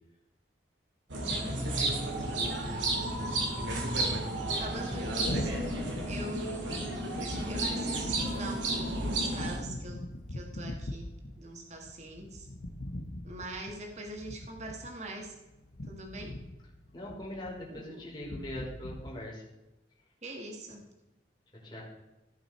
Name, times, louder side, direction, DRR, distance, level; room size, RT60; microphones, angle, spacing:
sound 1, 1.1-9.6, right 2 dB, 85° right, 2.3 m, -32 dB
voice 1, 1.3-2.1 4.6-6.9 7.4-10.0 10.3-12.5 13.2-15.3 15.9-16.3 17.7-18.0 20.2-20.8, right 1 dB, 40° right, 2 dB, 1.6 m, -43 dB
sound 2, 5.2-19.1, left 1 dB, 65° left, 1.0 m, -42 dB
voice 2, 16.9-19.4 21.6-21.8, left 1 dB, 25° left, -5 dB, 3.1 m, -41 dB
15.5 x 5.6 x 4.4 m, 1.0 s
head